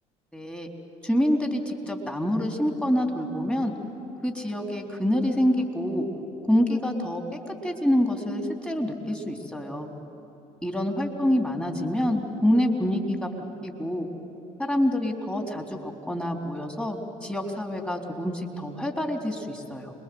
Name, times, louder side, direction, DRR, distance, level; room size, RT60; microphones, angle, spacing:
voice 1, 0.3-0.7 1.0-3.7 4.2-6.1 6.5-7.2 7.5-9.9 10.6-13.3 13.6-14.1 14.6-19.9, left 1 dB, 5° left, 3 dB, 3.7 m, -26 dB
27.5 x 22.0 x 8.0 m, 2.9 s
hypercardioid pair, 55°, 18 cm